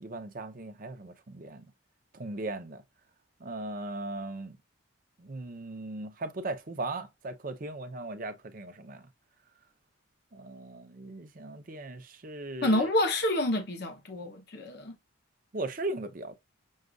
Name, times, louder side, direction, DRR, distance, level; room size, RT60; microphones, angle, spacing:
voice 1, 0.0-1.7 2.1-2.8 3.4-4.6 5.2-9.0 10.3-12.9 15.5-16.4, right 2 dB, 40° right, 0.6 m, -38 dB
voice 2, 12.6-15.0, left 1 dB, 50° left, 0.8 m, -28 dB
6.3 x 2.4 x 2.3 m
head